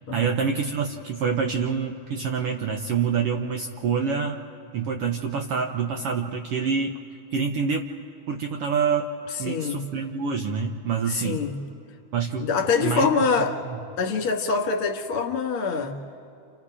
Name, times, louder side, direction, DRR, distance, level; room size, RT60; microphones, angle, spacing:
voice 1, 0.1-4.4 4.7-6.9 7.3-7.9 8.3-9.1 9.4-11.4 12.1-12.5 12.7-13.1 13.7-13.8, right 6 dB, 65° right, 3 dB, 1.5 m, -26 dB
voice 2, 9.5-9.8 11.1-11.6 12.4-13.5 14.0-15.9, left 5 dB, 50° left, 2 dB, 2.4 m, -24 dB
30.0 x 29.0 x 4.9 m, 2.5 s
omnidirectional pair, 3.6 m